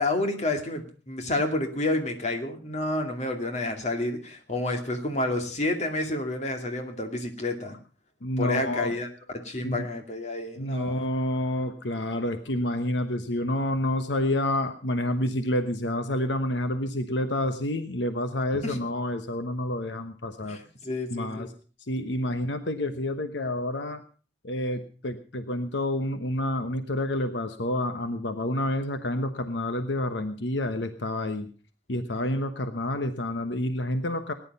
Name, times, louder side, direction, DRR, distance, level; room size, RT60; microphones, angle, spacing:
voice 1, 0.0-7.8 8.4-9.1 9.3-11.0 18.6-18.8 20.5-21.5, left 2 dB, 40° left, 5 dB, 2.4 m, -29 dB
voice 2, 8.2-9.0 9.6-9.9 10.6-20.6 21.1-21.5 21.9-24.0 24.4-31.5 31.9-34.3, left 1 dB, 80° left, 8 dB, 1.2 m, -28 dB
18.5 x 10.5 x 5.5 m, 0.38 s
head